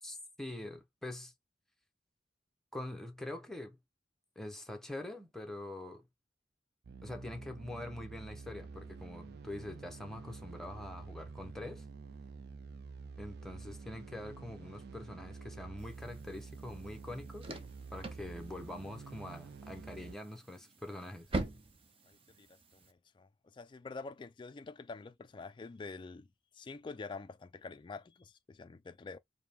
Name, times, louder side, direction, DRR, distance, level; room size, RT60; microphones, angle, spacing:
voice 1, 0.0-1.3 2.7-3.8 4.4-6.1 7.0-11.9 13.2-17.6 17.9-21.3, left 1 dB, 5° left, 0.7 m, -44 dB
sound 1, 6.8-20.2, right 4 dB, 65° right, 0.4 m, -49 dB
sound 2, 15.8-22.9, right 2 dB, 30° right, 0.7 m, -45 dB
voice 2, 22.0-29.2, left 4 dB, 25° left, 0.3 m, -47 dB
4.6 x 2.1 x 3.5 m
head